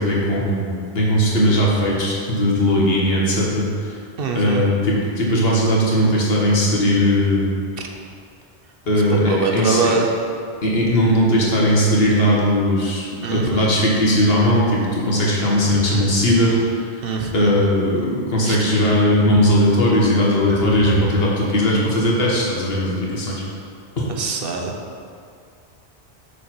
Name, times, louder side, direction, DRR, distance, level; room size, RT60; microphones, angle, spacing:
voice 1, 0.0-3.9 4.3-7.5 8.9-9.9 10.6-16.6 17.3-23.4 24.0-24.1, equal, 65° left, -4 dB, 1.7 m, -18 dB
voice 2, 4.2-4.7 9.3-10.1 13.2-13.7 17.0-17.5 18.4-18.6 24.1-24.8, right 4 dB, 65° right, 2 dB, 1.0 m, -23 dB
6.6 x 6.5 x 4.4 m, 2.3 s
omnidirectional pair, 1.1 m